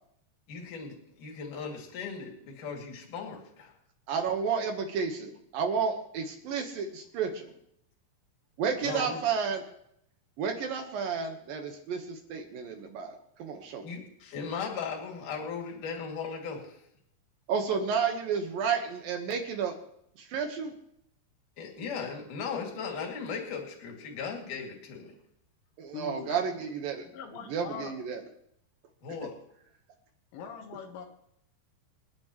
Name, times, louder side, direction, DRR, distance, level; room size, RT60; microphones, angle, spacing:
voice 1, 0.5-3.7 8.8-9.2 13.8-16.8 21.6-25.1 29.0-29.3, left 5 dB, 50° left, 0 dB, 3.6 m, -37 dB
voice 2, 4.1-7.5 8.6-9.6 10.4-13.9 17.5-19.7 20.2-20.7 25.8-27.1 27.5-28.2, right 6 dB, 65° right, 4 dB, 2.4 m, -31 dB
voice 3, 25.9-26.4 27.1-27.9 30.3-31.0, left 7 dB, 85° left, 1 dB, 4.0 m, -41 dB
28.0 x 10.5 x 3.1 m, 0.72 s
omnidirectional pair, 5.5 m